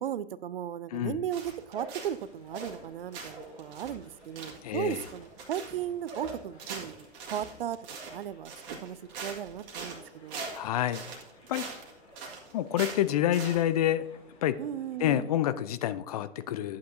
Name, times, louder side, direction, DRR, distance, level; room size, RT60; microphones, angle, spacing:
voice 1, 0.0-7.8 8.1-10.4 14.6-15.3, right 10 dB, 60° right, 18 dB, 0.5 m, -36 dB
voice 2, 0.9-1.2 4.6-5.0 10.5-11.7 12.5-14.0 14.4-14.6 15.0-16.8, left 12 dB, 35° left, 14 dB, 0.4 m, -28 dB
sound 1, 1.3-2.3 2.5-2.9 3.1-13.6, right 5 dB, 35° right, 1.9 m, -42 dB
sound 2, 1.6-3.6 3.9-10.7 11.0-11.5 11.8-12.3, right 2 dB, 15° right, 1.7 m, -47 dB
sound 3, 1.7-15.3, left 2 dB, 70° left, 2.7 m, -57 dB
11.5 x 8.5 x 2.7 m, 0.80 s
figure-of-eight pair, 110°, 33 cm